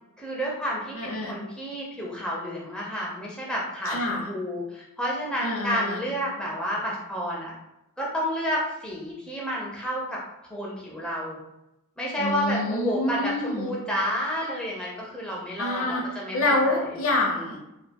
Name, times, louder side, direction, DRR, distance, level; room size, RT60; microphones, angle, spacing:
voice 1, 0.2-7.5 8.0-10.2 10.5-11.4 12.0-16.8, equal, 5° left, -5 dB, 0.4 m, -30 dB
voice 2, 0.9-1.3 3.9-4.3 5.4-6.0 12.2-13.7 15.6-16.0 16.3-17.6, left 2 dB, 65° left, 0 dB, 0.6 m, -26 dB
2.3 x 2.2 x 2.7 m, 0.88 s
head